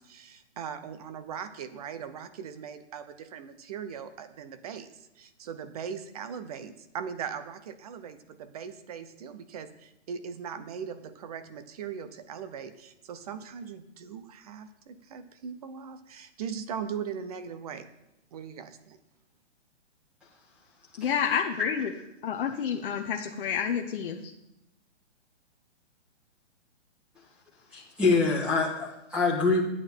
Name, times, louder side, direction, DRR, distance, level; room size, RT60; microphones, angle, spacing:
voice 1, 0.0-17.9 18.3-19.0, right 7 dB, 35° right, 11 dB, 0.7 m, -39 dB
voice 2, 21.0-21.9 22.2-24.2, left 8 dB, 50° left, 2 dB, 0.8 m, -29 dB
voice 3, 27.7-29.6, left 4 dB, 5° right, -6 dB, 1.7 m, -25 dB
10.5 x 8.4 x 4.4 m, 0.88 s
hypercardioid pair, 155°, 35 cm